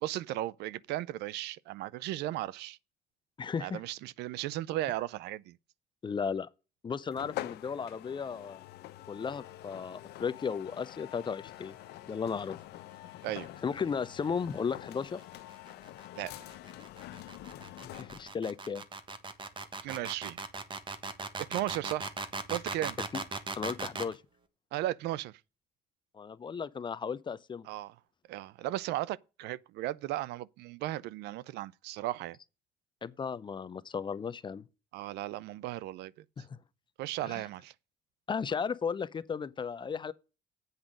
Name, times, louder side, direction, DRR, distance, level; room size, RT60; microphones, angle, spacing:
voice 1, 0.0-2.8 3.6-5.6 13.2-13.5 16.2-16.3 19.8-20.4 21.4-22.1 22.5-23.0 24.7-25.3 27.7-27.9 28.3-32.4 34.9-36.2 37.0-37.7, right 15 dB, 80° right, 0.4 m, -36 dB
voice 2, 3.4-3.8 6.0-6.5 6.8-8.6 9.1-11.7 12.1-12.5 13.6-15.2 18.0-18.8 23.6-24.2 26.1-27.7 33.0-34.6 36.4-36.6 37.2-37.4 38.3-40.1, left 6 dB, 30° left, 0.6 m, -35 dB
sound 1, 7.1-18.4, left 15 dB, 75° left, 0.7 m, -46 dB
sound 2, 14.9-24.1, right 3 dB, 30° right, 1.3 m, -39 dB
8.1 x 5.1 x 7.4 m
cardioid pair, 110°, 17 cm